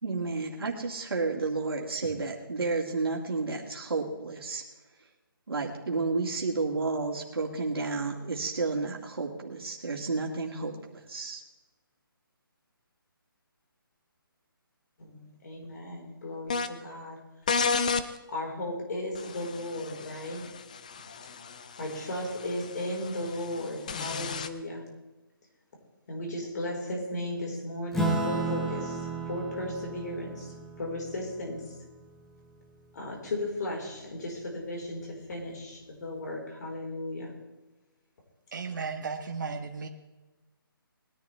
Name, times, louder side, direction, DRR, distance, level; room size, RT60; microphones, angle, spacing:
voice 1, 0.0-4.6 5.5-11.4, right 3 dB, 90° right, -1 dB, 2.4 m, -31 dB
voice 2, 15.0-17.2 18.3-20.5 21.0-21.1 21.8-24.9 26.1-31.7 32.9-37.3, left 1 dB, 50° left, -1 dB, 4.7 m, -36 dB
sound 1, 16.5-16.7 17.5-18.1 19.1-24.5, left 5 dB, 20° left, 0.4 m, -33 dB
Acoustic guitar / Strum, 27.9-32.8, right 2 dB, ahead, 0.8 m, -33 dB
voice 3, 38.5-39.9, right 5 dB, 55° right, 2 dB, 1.4 m, -35 dB
20.5 x 11.0 x 3.4 m, 1.1 s
hypercardioid pair, 170°, 12 cm